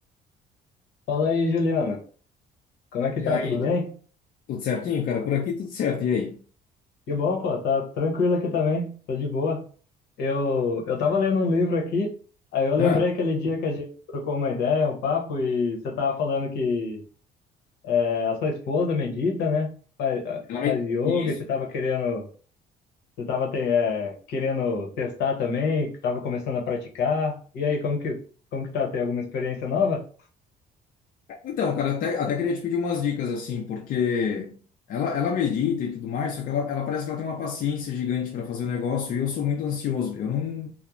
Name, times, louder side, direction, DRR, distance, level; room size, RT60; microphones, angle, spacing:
voice 1, 1.1-2.0 2.9-3.9 7.1-9.6 10.2-12.1 12.5-17.0 17.8-19.7 20.0-22.3 23.2-28.2 28.5-30.0, left 4 dB, 75° left, 0.8 m, -25 dB
voice 2, 3.2-3.7 4.5-6.4 12.8-13.0 20.5-21.4 31.3-34.6 34.9-40.7, left 7 dB, 55° left, 0.4 m, -27 dB
2.4 x 2.0 x 2.9 m
cardioid pair, 110°, 17 cm